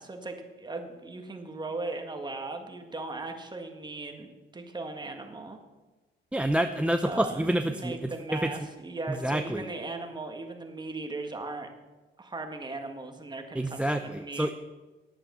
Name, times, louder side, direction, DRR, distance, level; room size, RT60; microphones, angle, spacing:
voice 1, 0.0-4.3 4.5-5.6 7.0-11.7 12.2-14.5, right 3 dB, 20° right, 4 dB, 1.7 m, -38 dB
voice 2, 6.3-8.5 9.2-9.7 13.5-14.5, right 1 dB, 5° right, 9 dB, 0.5 m, -28 dB
10.0 x 8.7 x 6.5 m, 1.2 s
cardioid pair, 90°, 20 cm